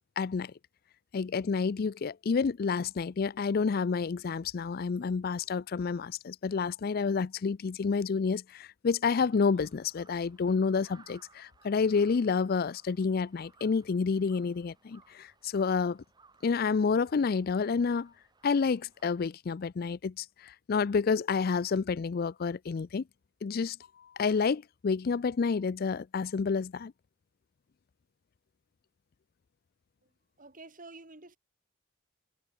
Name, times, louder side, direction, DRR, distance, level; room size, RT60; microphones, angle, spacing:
voice 1, 0.2-0.5 1.1-16.0 16.4-18.1 18.4-23.0 23.4-23.8 24.2-26.9, left 5 dB, 50° left, 0.4 m, -29 dB
Crow, 9.2-19.0, right 4 dB, 20° right, 2.1 m, -62 dB
voice 2, 30.4-31.4, right 3 dB, 45° right, 3.3 m, -49 dB
head